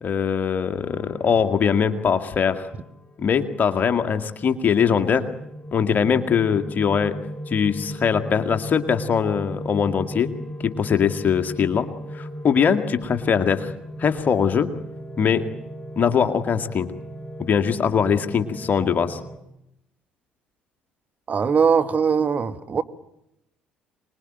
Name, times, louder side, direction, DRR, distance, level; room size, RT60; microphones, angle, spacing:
voice 1, 0.0-2.7 3.2-5.3 5.7-7.2 7.5-10.3 10.6-11.9 12.1-13.7 14.0-14.7 15.2-15.5 16.0-16.9 17.4-19.2, left 7 dB, 45° left, 8 dB, 2.1 m, -21 dB
sound 1, 0.8-3.5 4.2-19.4, equal, 20° left, 3.7 m, -37 dB
voice 2, 21.3-22.8, right 6 dB, 40° right, 10 dB, 1.9 m, -20 dB
25.5 x 21.0 x 9.2 m, 0.84 s
hypercardioid pair, 55°, 4 cm